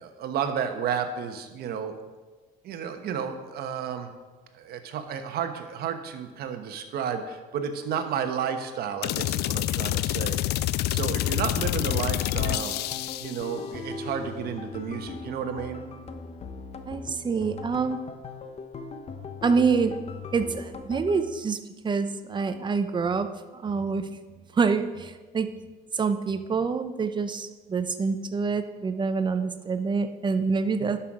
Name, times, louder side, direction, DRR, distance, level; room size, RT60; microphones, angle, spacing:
voice 1, 0.0-1.9 2.6-4.1 4.5-12.8 13.2-15.9 30.8-30.9, right 7 dB, 70° right, 7 dB, 1.1 m, -32 dB
sound 1, 9.0-13.5, left 14 dB, 75° left, 0.4 m, -27 dB
sound 2, 12.1-21.2, left 4 dB, 40° left, 0.9 m, -39 dB
voice 2, 16.9-18.0 19.4-20.0 20.3-21.6 21.8-23.3 23.5-24.1 24.5-25.5 25.9-31.0, right 5 dB, 25° right, 10 dB, 0.7 m, -26 dB
11.5 x 5.8 x 4.9 m, 1.3 s
cardioid pair, 110°, 17 cm